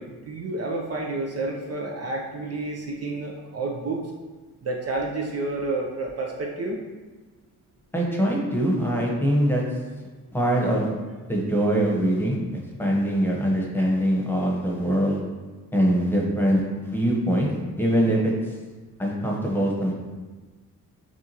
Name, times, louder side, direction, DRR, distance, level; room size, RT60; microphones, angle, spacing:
voice 1, 0.0-4.0 4.6-6.8, right 2 dB, 45° right, -1 dB, 0.5 m, -30 dB
voice 2, 7.9-9.6 10.3-10.9 11.3-15.2 15.7-17.5 17.8-18.3 19.0-19.9, equal, 5° left, -2 dB, 1.0 m, -23 dB
6.9 x 2.4 x 2.9 m, 1.3 s
cardioid pair, 80°, 36 cm